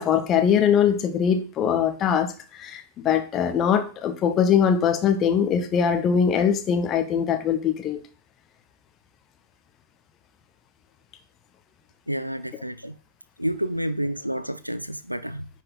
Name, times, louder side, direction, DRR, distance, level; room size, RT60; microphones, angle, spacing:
voice 1, 0.0-8.0, left 7 dB, 30° left, 1.3 m, -22 dB
voice 2, 12.1-12.9 13.4-15.5, equal, 90° right, 0.4 m, -29 dB
9.9 x 4.9 x 4.1 m
figure-of-eight pair, 90°, 0 cm